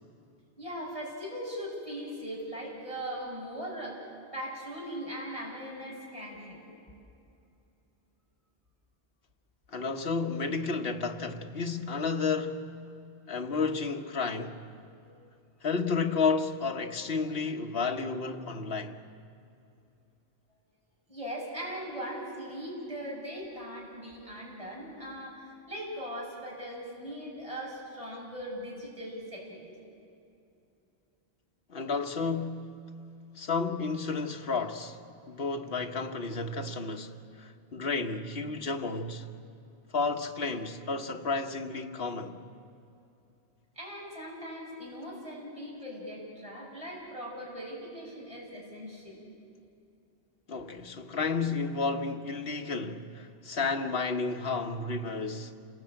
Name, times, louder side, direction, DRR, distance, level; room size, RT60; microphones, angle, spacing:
voice 1, 0.6-4.1 4.3-6.6 15.0-15.3 21.1-29.7 43.8-49.2, equal, 30° right, 7.1 m, -40 dB
voice 2, 9.7-12.7 13.3-14.6 15.6-19.0 31.7-32.8 33.4-35.0 35.3-39.3 39.9-42.4 50.5-55.5, left 4 dB, 65° left, 1.5 m, -32 dB
28.0 x 20.0 x 8.9 m
omnidirectional pair, 1.1 m